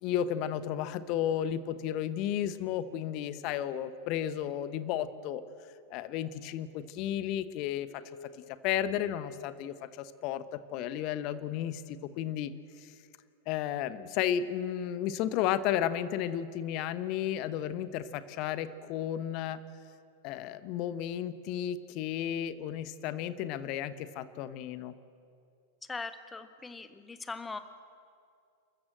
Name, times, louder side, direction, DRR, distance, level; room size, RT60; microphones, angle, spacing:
voice 1, 0.0-5.4 5.9-7.9 8.6-12.5 12.8-12.9 13.5-19.6 20.2-24.9, left 10 dB, 40° left, 13 dB, 1.0 m, -33 dB
voice 2, 25.9-27.6, left 4 dB, 15° left, 10 dB, 1.5 m, -40 dB
29.5 x 13.5 x 7.7 m, 2.4 s
figure-of-eight pair, 90°, 0 cm